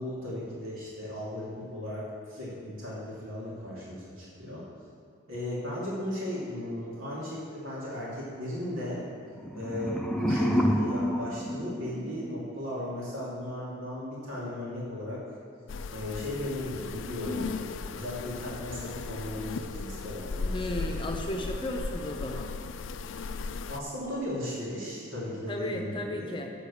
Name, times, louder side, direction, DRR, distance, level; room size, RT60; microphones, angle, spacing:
voice 1, 0.0-4.6 5.3-9.0 9.5-15.2 15.9-21.0 23.7-26.4, left 1 dB, 80° right, -7 dB, 2.7 m, -36 dB
sound 1, 9.3-12.4, equal, 5° left, 0.5 m, -29 dB
sound 2, 15.7-23.8, left 4 dB, 70° left, 0.4 m, -36 dB
voice 2, 20.5-22.5 25.5-26.5, left 1 dB, 25° left, 2 dB, 0.9 m, -34 dB
8.6 x 6.8 x 6.9 m, 2.5 s
head